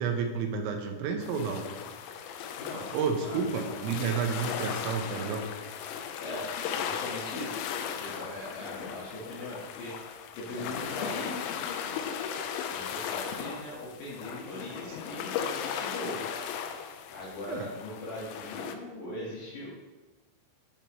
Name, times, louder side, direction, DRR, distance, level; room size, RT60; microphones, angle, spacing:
voice 1, 0.0-1.7 2.9-5.5 17.5-17.7, right 5 dB, 85° right, 4 dB, 3.6 m, -30 dB
sound 1, 1.2-18.7, left 8 dB, 90° left, 3.3 m, -37 dB
voice 2, 6.2-7.7 8.0-11.6 12.7-16.2 17.1-19.7, left 1 dB, 65° left, -6 dB, 2.3 m, -40 dB
10.0 x 8.8 x 3.0 m, 1.2 s
omnidirectional pair, 5.9 m